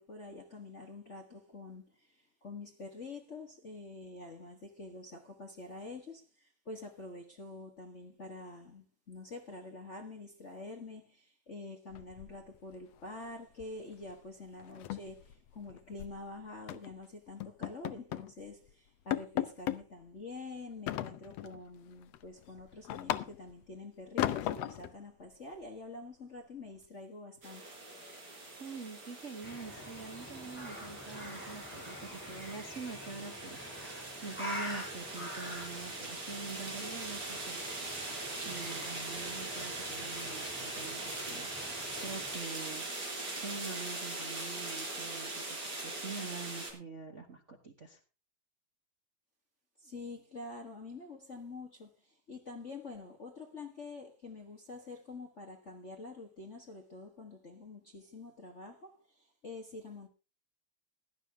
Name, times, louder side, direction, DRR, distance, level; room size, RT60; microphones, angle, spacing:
voice 1, 0.0-27.6 49.8-60.1, left 3 dB, 60° left, 0.7 m, -47 dB
sound 1, 11.9-12.8 13.0-13.3 13.6-13.8 14.1-14.2 14.6-16.2 16.7-16.9 17.4-18.3 18.7-18.8 19.1-19.8 20.9-21.6 22.0-23.6 24.2-24.9, left 12 dB, 80° left, 1.4 m, -36 dB
sound 2, 27.4-46.7, right 2 dB, 30° right, 4.6 m, -41 dB
voice 2, 28.6-37.6 38.4-42.8 43.4-48.0, right 4 dB, 70° right, 0.7 m, -45 dB
sound 3, 29.4-42.4, equal, 5° left, 6.1 m, -46 dB
16.5 x 11.5 x 3.5 m
omnidirectional pair, 3.8 m